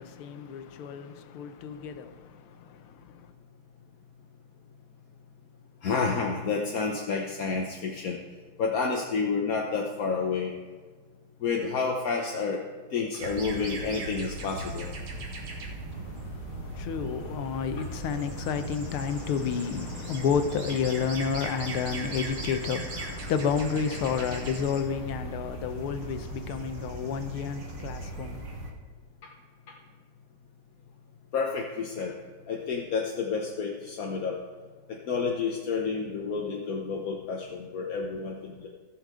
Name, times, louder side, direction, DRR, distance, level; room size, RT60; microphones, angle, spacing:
voice 1, 0.0-3.3 15.9-28.7, left 6 dB, 90° left, 1.7 m, -31 dB
voice 2, 5.8-8.2 8.6-10.5 11.4-12.6 12.9-14.9 31.3-32.1 32.5-34.4 35.1-38.7, left 5 dB, 55° left, 1.1 m, -29 dB
sound 1, 13.2-28.7, right 2 dB, 75° right, 2.4 m, -38 dB
17.5 x 6.4 x 3.8 m
omnidirectional pair, 2.3 m